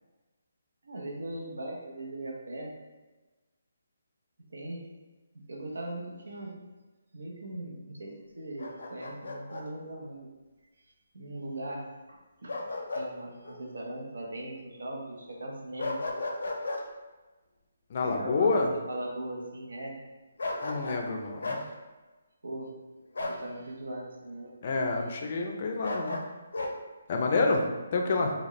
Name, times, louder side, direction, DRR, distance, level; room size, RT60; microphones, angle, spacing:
voice 1, 0.8-2.7 4.5-4.9 5.5-6.5 7.1-10.3 10.9-12.6 12.9-16.0 18.0-18.5 18.9-19.9 22.4-22.7 23.2-24.5, right 1 dB, 85° right, 0 dB, 0.9 m, -39 dB
Bark, 8.6-9.7 12.5-13.1 13.4-13.6 15.8-16.8 20.4-21.1 21.4-21.6 23.1-23.4 25.8-26.7, left 2 dB, 80° left, 0.6 m, -34 dB
voice 2, 17.9-18.7 20.6-21.6 24.6-26.2 27.1-27.6 27.9-28.3, left 3 dB, 35° left, 2 dB, 0.4 m, -28 dB
4.1 x 2.2 x 3.1 m, 1.2 s
hypercardioid pair, 170°, 0 cm